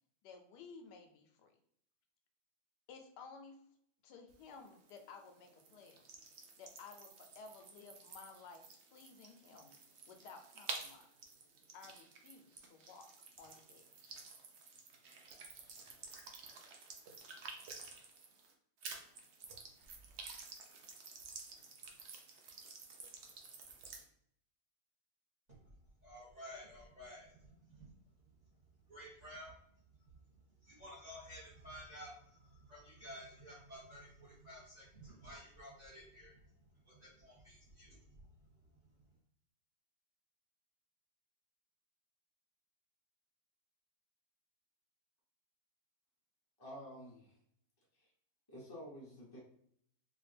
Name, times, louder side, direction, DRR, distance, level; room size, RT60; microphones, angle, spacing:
voice 1, 0.2-1.5 2.9-3.6 4.0-6.0 6.6-8.6 8.9-9.7 10.1-11.1 11.7-13.1 13.4-14.2, left 5 dB, 75° left, 5 dB, 1.1 m, -55 dB
sound 1, 4.3-18.5 18.8-24.0, right 4 dB, 75° right, 0.6 m, -52 dB
voice 2, 26.0-27.9 28.9-29.5 30.6-36.4 36.8-38.3, equal, 30° right, -6 dB, 1.0 m, -53 dB
voice 3, 46.6-47.4 47.9-48.1 48.5-49.4, equal, 30° left, -5 dB, 0.4 m, -50 dB
4.1 x 2.5 x 3.2 m, 0.68 s
omnidirectional pair, 1.9 m